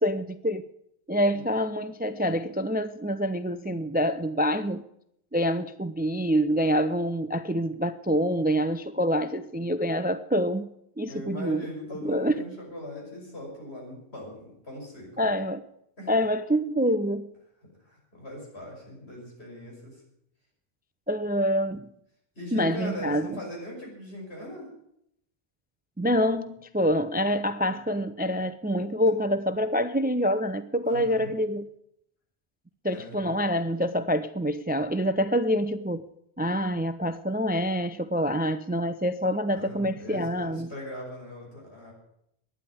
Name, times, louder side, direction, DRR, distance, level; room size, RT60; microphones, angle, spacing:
voice 1, 0.0-0.6 1.1-4.8 5.3-10.7 11.0-11.6 12.0-12.3 15.2-15.6 16.1-17.3 21.1-21.9 22.5-23.4 26.0-31.7 32.8-36.0 36.4-40.7, equal, 15° right, 0.4 m, -26 dB
voice 2, 11.1-15.4 16.0-16.1 17.9-20.0 22.4-24.7 30.9-31.3 32.9-33.2 39.5-41.9, left 1 dB, 85° left, 6.2 m, -40 dB
12.0 x 10.0 x 8.5 m
omnidirectional pair, 1.1 m